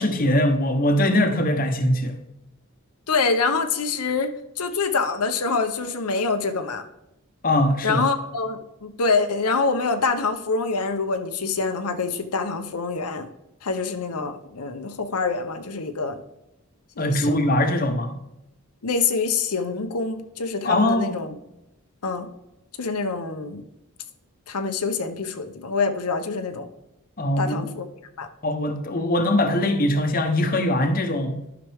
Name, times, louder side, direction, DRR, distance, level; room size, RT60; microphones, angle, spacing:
voice 1, 0.0-2.2 7.4-8.0 17.0-18.1 20.6-21.2 27.2-27.7 28.4-31.4, left 1 dB, 40° left, 5 dB, 0.9 m, -22 dB
voice 2, 3.1-6.8 7.8-13.3 13.6-16.2 17.0-17.4 18.8-21.3 22.0-22.3 22.8-23.6 24.5-26.7 27.4-27.9 28.2-28.3, left 4 dB, 90° left, 6 dB, 0.8 m, -25 dB
12.0 x 5.9 x 3.5 m, 0.87 s
head